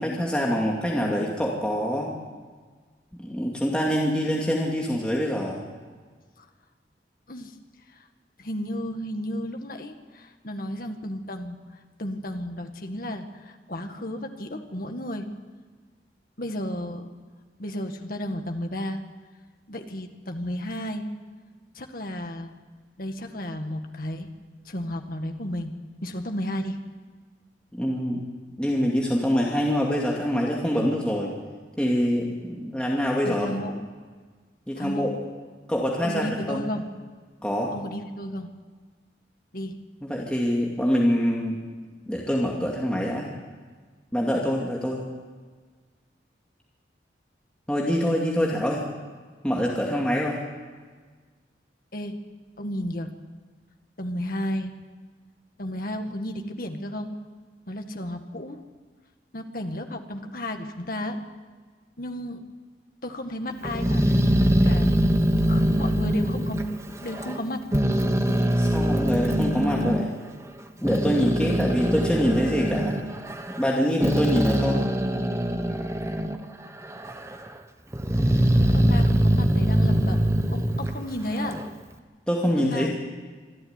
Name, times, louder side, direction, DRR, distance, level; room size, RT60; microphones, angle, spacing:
voice 1, 0.0-2.1 3.2-5.6 27.7-28.2 28.6-31.3 31.8-33.5 34.7-35.1 35.7-36.7 37.4-37.7 40.0-41.6 42.1-43.3 44.1-45.0 47.7-48.9 49.4-50.4 68.6-70.1 70.8-73.0 73.5-74.8 82.3-82.9, equal, 5° left, -3 dB, 2.4 m, -25 dB
voice 2, 8.4-11.6 12.0-15.3 16.4-17.1 17.6-19.0 19.7-21.1 21.8-22.5 23.0-24.3 24.7-25.7 26.0-26.8 33.2-33.8 34.8-35.1 36.0-36.9 37.7-38.5 39.5-39.8 51.9-52.2 52.6-53.1 54.0-54.7 55.6-57.1 57.7-58.6 59.3-61.2 62.0-62.4 63.0-64.1 64.6-65.0 65.5-67.6 78.6-80.3 80.5-81.6 82.5-82.9, equal, 55° left, 5 dB, 1.9 m, -33 dB
Growling, 63.6-67.4 67.7-70.0 70.6-76.4 76.8-77.5 77.9-81.7, equal, 15° right, 1.3 m, -23 dB
26.0 x 12.5 x 9.7 m, 1.5 s
head